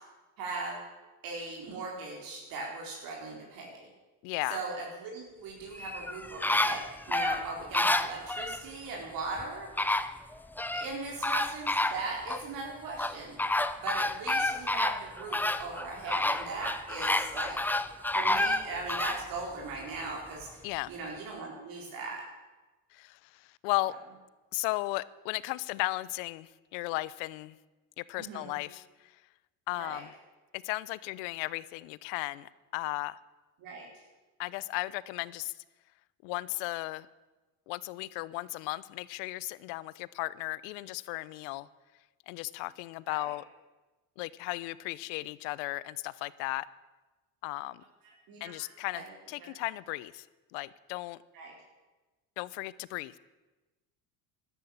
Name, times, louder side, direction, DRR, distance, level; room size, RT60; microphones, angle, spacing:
voice 1, 0.4-0.8 1.2-3.9 4.5-9.7 10.7-13.4 13.8-17.6 18.1-20.5 20.9-22.2 28.2-28.6 29.8-30.0 33.6-34.0 43.1-43.3 48.3-48.7 48.9-49.0 49.5-49.6 51.3-51.5, right 3 dB, 65° right, -1 dB, 4.2 m, -39 dB
voice 2, 4.2-4.6 20.6-20.9 22.9-23.9 24.5-27.6 28.0-29.1 29.7-30.1 30.5-33.2 34.4-35.5 36.2-37.1 37.7-41.7 42.3-43.4 44.2-46.7 47.4-47.8 48.4-50.3 50.5-51.2 52.4-53.2, left 20 dB, 85° left, 19 dB, 0.8 m, -35 dB
sound 1, 5.7-8.6 9.4-9.5 9.8-10.9 11.2-12.4 13.0-19.2 19.7-19.8, left 2 dB, 5° left, 0.7 m, -29 dB
12.5 x 12.5 x 8.7 m, 1.2 s
supercardioid pair, 110°, 37 cm